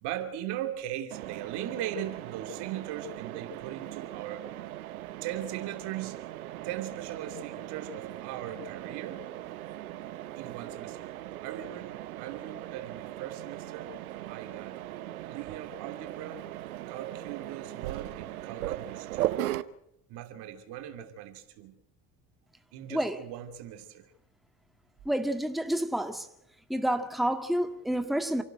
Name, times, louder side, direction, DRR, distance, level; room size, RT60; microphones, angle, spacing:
voice 1, 0.0-4.5 5.2-6.2 6.6-9.3 10.4-11.1 11.4-13.9 14.3-14.8 15.3-16.4 16.9-19.4 20.1-21.7 22.7-24.0, right 11 dB, 70° right, 2.9 m, -39 dB
Mechanisms, 1.1-19.6, right 14 dB, 90° right, 0.9 m, -39 dB
voice 2, 25.1-26.3 26.7-28.4, right 1 dB, ahead, 1.9 m, -29 dB
28.0 x 12.0 x 9.0 m
hypercardioid pair, 65°, 42 cm